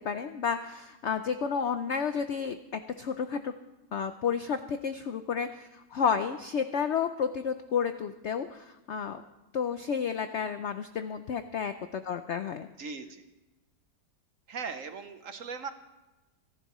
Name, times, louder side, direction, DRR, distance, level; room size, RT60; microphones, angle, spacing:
voice 1, 0.0-3.5 3.9-9.2 9.5-12.7, left 6 dB, 75° left, 9 dB, 0.6 m, -31 dB
voice 2, 12.8-13.2 14.5-15.7, right 5 dB, 55° right, 8 dB, 1.1 m, -39 dB
29.5 x 11.0 x 3.1 m, 1.1 s
omnidirectional pair, 1.9 m